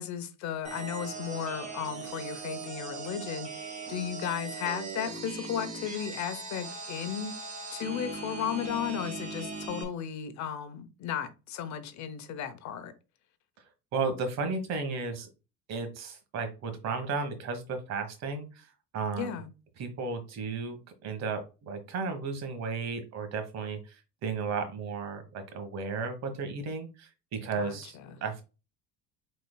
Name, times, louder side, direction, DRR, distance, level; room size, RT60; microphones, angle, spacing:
voice 1, 0.0-7.3 7.7-12.9 19.2-19.5 27.6-28.2, left 9 dB, 55° left, 0.9 m, -35 dB
sound 1, 0.6-9.8, right 4 dB, 20° right, 1.4 m, -39 dB
voice 2, 13.9-15.3 15.7-19.4 19.8-28.4, right 4 dB, 50° right, 1.4 m, -34 dB
5.2 x 4.3 x 2.3 m
cardioid pair, 130°, 33 cm